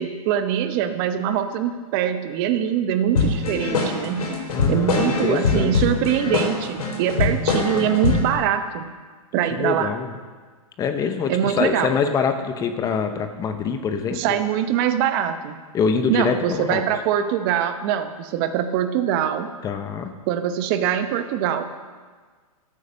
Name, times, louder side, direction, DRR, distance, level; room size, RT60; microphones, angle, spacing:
voice 1, 0.0-4.3 4.7-8.9 9.3-9.9 11.3-11.9 14.1-15.6 16.1-19.5 20.3-21.8, right 10 dB, 40° right, 9 dB, 1.0 m, -23 dB
sound 1, 3.1-8.3, left 4 dB, 80° left, 4.0 m, -22 dB
voice 2, 4.5-5.9 9.5-10.2 10.8-14.4 15.7-16.8 19.6-20.1, left 6 dB, 20° left, 7 dB, 0.8 m, -25 dB
13.5 x 8.5 x 5.6 m, 1.5 s
hypercardioid pair, 140°, 19 cm